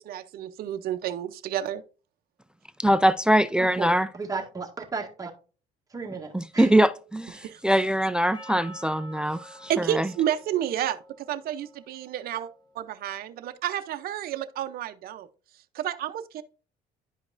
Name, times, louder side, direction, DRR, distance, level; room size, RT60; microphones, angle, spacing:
voice 1, 0.0-1.8 7.4-7.6 9.7-12.5 12.7-15.3 15.7-16.4, right 11 dB, 65° right, 0.7 m, -30 dB
voice 2, 2.8-4.1 6.3-10.1, right 1 dB, 5° right, 0.3 m, -23 dB
voice 3, 3.6-5.3 5.9-6.7, right 4 dB, 20° right, 1.8 m, -34 dB
Percussion, 8.3-12.8, right 1 dB, 25° left, 1.4 m, -48 dB
10.5 x 5.1 x 2.6 m
cardioid pair, 110°, 17 cm